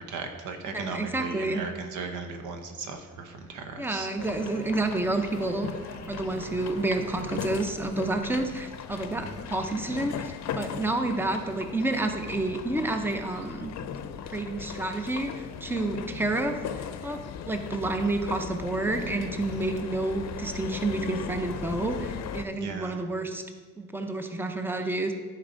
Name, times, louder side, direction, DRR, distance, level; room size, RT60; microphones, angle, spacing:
voice 1, 0.1-4.1 9.1-9.4 19.5-19.7 22.6-23.0, right 4 dB, 80° right, 5 dB, 1.0 m, -37 dB
voice 2, 0.7-1.6 3.8-5.7 6.1-13.7 14.2-17.2 17.5-23.4 23.8-25.1, right 2 dB, 5° right, 5 dB, 0.7 m, -29 dB
sound 1, 4.2-22.5, left 7 dB, 60° left, 0.6 m, -38 dB
sound 2, 4.2-7.5 8.2-9.2, right 2 dB, 45° right, 1.3 m, -48 dB
10.5 x 4.5 x 5.2 m, 1.5 s
cardioid pair, 90°, 30 cm